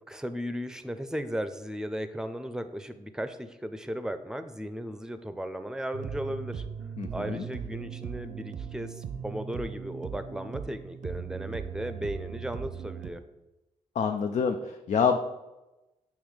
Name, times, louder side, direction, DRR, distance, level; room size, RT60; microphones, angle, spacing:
voice 1, 0.0-6.6 7.1-13.2, equal, 5° right, 10 dB, 0.6 m, -36 dB
sound 1, 5.9-13.1, right 7 dB, 70° right, 0.6 m, -38 dB
voice 2, 7.0-7.4 13.9-15.2, left 6 dB, 60° left, 6 dB, 0.5 m, -27 dB
7.1 x 3.1 x 5.0 m, 1.0 s
supercardioid pair, 55°, 14 cm